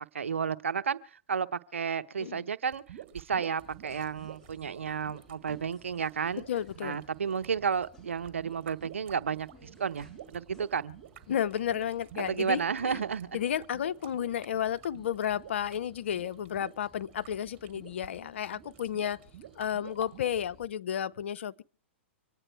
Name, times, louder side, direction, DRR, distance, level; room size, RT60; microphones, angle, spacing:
voice 1, 0.1-1.0 1.3-2.8 3.1-6.4 6.8-11.0 12.3-13.3, right 6 dB, 85° right, 0.8 m, -32 dB
sound 1, 2.7-20.4, right 11 dB, 55° right, 1.7 m, -50 dB
sound 2, 3.6-20.7, left 1 dB, 5° left, 2.7 m, -60 dB
voice 2, 6.5-7.0 11.3-13.0 13.3-19.2 19.6-21.6, left 9 dB, 70° left, 0.6 m, -32 dB
25.5 x 9.1 x 4.6 m
hypercardioid pair, 115°, 7 cm